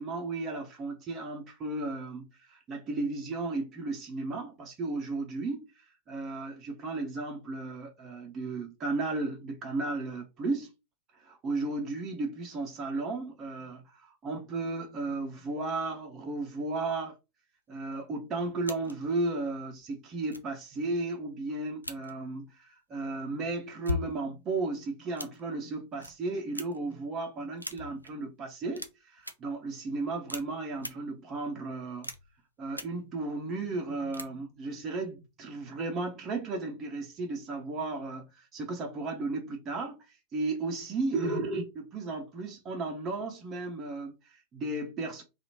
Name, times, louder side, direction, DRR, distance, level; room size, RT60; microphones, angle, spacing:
voice 1, 0.0-10.7 11.1-17.2 17.7-32.1 32.6-45.2, right 3 dB, 30° right, 0.7 m, -34 dB
sound 1, 18.6-19.1 19.8-19.9 20.3-20.6 21.8-22.1 23.6-24.2 25.2-25.4 26.0-26.1 26.5-26.9 27.6-28.1 28.7-28.9 29.2-29.3 30.3-30.4 30.8-30.9 32.0-32.4 32.7-32.8 34.1-34.2, left 3 dB, 90° left, 0.4 m, -37 dB
2.7 x 2.4 x 2.9 m
figure-of-eight pair, 90°, 0 cm